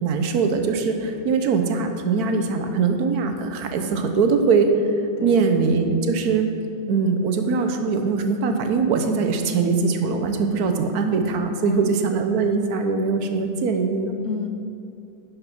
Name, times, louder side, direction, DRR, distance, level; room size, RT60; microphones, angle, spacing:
voice 1, 0.0-6.5 6.9-14.2, right 4 dB, 65° right, 6 dB, 1.2 m, -22 dB
voice 2, 5.2-5.6 11.6-12.0 14.2-14.5, left 5 dB, 70° left, 5 dB, 0.7 m, -31 dB
10.5 x 5.3 x 5.8 m, 2.6 s
omnidirectional pair, 1.9 m